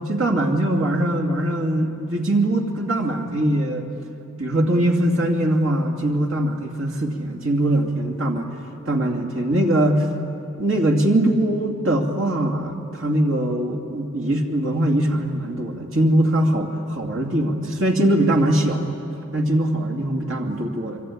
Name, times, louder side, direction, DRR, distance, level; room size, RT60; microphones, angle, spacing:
voice 1, 0.1-3.9 4.4-8.5 8.8-10.1 10.6-18.9 19.3-21.0, right 1 dB, 65° right, 2 dB, 2.7 m, -21 dB
25.0 x 24.5 x 8.8 m, 2.7 s
head